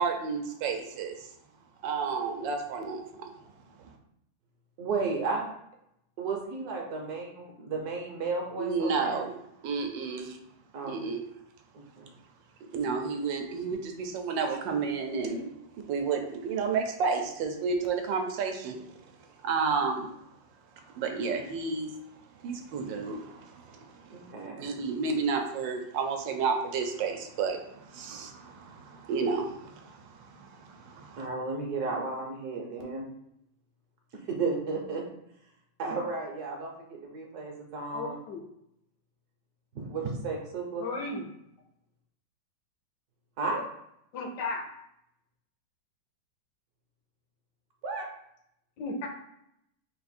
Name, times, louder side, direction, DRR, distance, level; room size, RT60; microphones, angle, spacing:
voice 1, 0.0-1.3 1.8-3.3 3.8-3.9 8.6-9.4 9.6-10.4 10.8-11.2 12.7-15.5 15.9-18.9 19.4-20.1 20.9-21.9 22.4-24.3 24.6-31.3, right 5 dB, 85° right, 4 dB, 1.3 m, -31 dB
voice 2, 4.8-5.5 6.2-9.2 10.7-11.0 11.7-12.1 24.1-24.6 31.1-33.1 34.3-35.0 35.8-38.2 39.7-40.9 43.4-43.6 47.8-48.1, right 4 dB, 65° right, 0 dB, 1.2 m, -33 dB
voice 3, 37.9-38.4 40.8-41.3 44.1-44.6 48.8-49.1, left 3 dB, 70° left, 2 dB, 1.2 m, -34 dB
3.9 x 2.5 x 4.1 m, 0.77 s
omnidirectional pair, 2.0 m